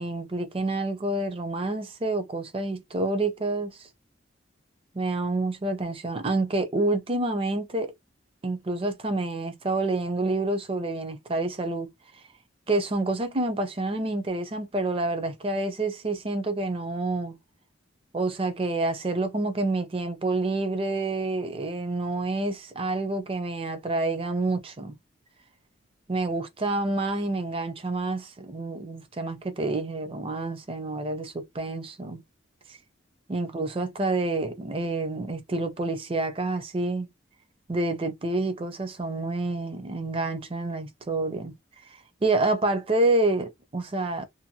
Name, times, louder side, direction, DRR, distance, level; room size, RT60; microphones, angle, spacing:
voice 1, 0.0-3.9 4.9-7.9 8.4-11.9 12.7-17.4 18.1-25.0 26.1-32.2 32.7-32.8 33.3-37.1 37.7-41.5 42.2-44.3, right 2 dB, 30° right, 0.4 m, -28 dB
2.6 x 2.1 x 2.7 m
head